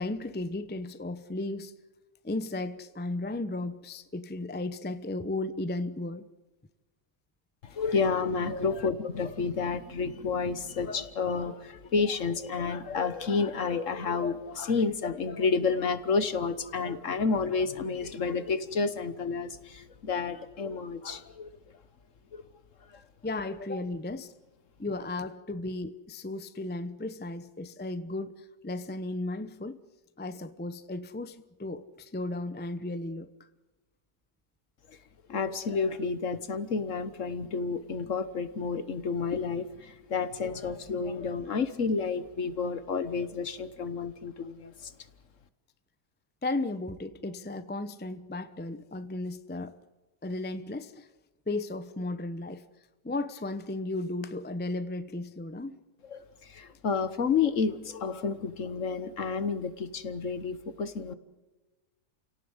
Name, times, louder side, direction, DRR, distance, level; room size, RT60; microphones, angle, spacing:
voice 1, 0.0-1.7 2.2-6.3 8.5-8.7 23.2-24.3 24.8-29.8 30.2-33.3 42.9-43.0 46.4-49.7 50.2-51.1 51.5-52.6 53.0-55.8, left 2 dB, 10° left, 0.4 m, -35 dB
voice 2, 7.6-21.6 22.3-22.4 22.9-23.0 34.9-35.0 35.3-44.9 56.0-61.1, left 5 dB, 50° left, 1.4 m, -30 dB
30.0 x 17.5 x 8.1 m
omnidirectional pair, 1.8 m